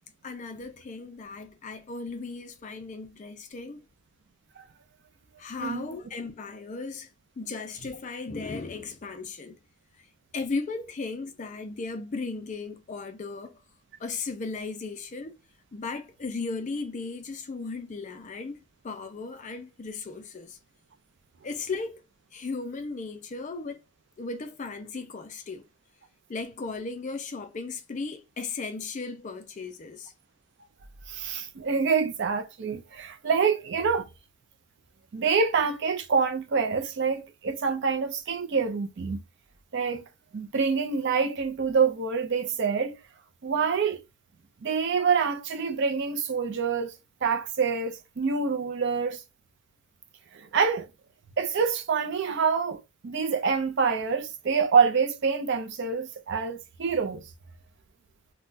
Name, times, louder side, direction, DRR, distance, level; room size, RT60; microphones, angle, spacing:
voice 1, 0.2-3.8 5.4-7.1 7.4-9.6 10.3-13.6 14.0-15.4 15.7-20.6 21.4-22.0 22.3-23.8 24.2-25.7 26.3-30.1, left 4 dB, 35° left, 0.4 m, -36 dB
voice 2, 31.1-34.1 35.1-39.2 39.7-40.0 40.3-42.9 43.4-44.0 44.6-46.9 47.2-49.2 50.3-50.9 51.4-57.2, right 5 dB, 50° right, 0.4 m, -26 dB
2.2 x 2.1 x 3.8 m
head